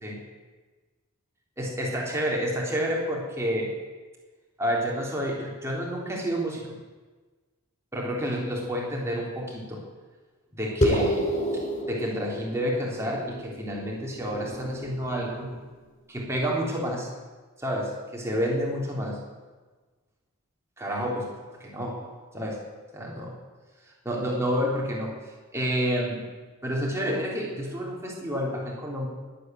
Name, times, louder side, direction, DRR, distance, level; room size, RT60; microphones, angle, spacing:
voice 1, 1.6-3.7 4.6-6.7 7.9-9.8 10.5-11.3 11.8-15.5 16.1-17.1 17.6-19.2 20.8-21.3 21.6-22.6 22.9-23.3 23.9-26.3 26.6-29.1, equal, 10° right, -3 dB, 3.5 m, -29 dB
sound 1, 10.8-15.6, equal, 30° left, 2.4 m, -30 dB
20.0 x 8.5 x 8.1 m, 1.3 s
head